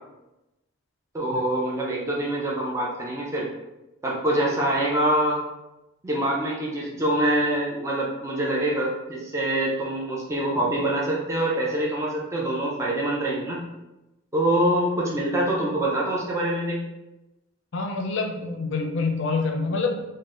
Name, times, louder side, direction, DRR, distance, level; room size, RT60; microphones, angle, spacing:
voice 1, 1.1-3.5 4.0-5.4 6.0-13.6 14.3-16.8, right 1 dB, 15° right, -4 dB, 0.5 m, -25 dB
voice 2, 17.7-20.0, left 3 dB, 60° left, 3 dB, 0.5 m, -26 dB
3.9 x 2.1 x 3.6 m, 0.99 s
head